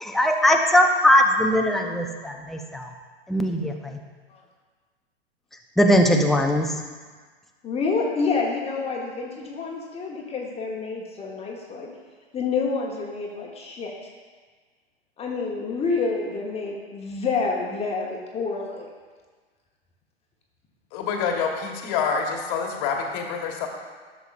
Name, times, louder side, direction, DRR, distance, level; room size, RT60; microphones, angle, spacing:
voice 1, 0.0-2.9 3.3-4.0 5.8-6.7, left 1 dB, ahead, 2 dB, 0.4 m, -20 dB
voice 2, 7.6-11.9 12.3-13.9 15.2-18.9, left 4 dB, 20° left, -1 dB, 1.0 m, -28 dB
voice 3, 20.9-23.7, left 6 dB, 45° left, 2 dB, 1.3 m, -27 dB
11.5 x 6.9 x 2.5 m, 1.5 s
hypercardioid pair, 110°, 32 cm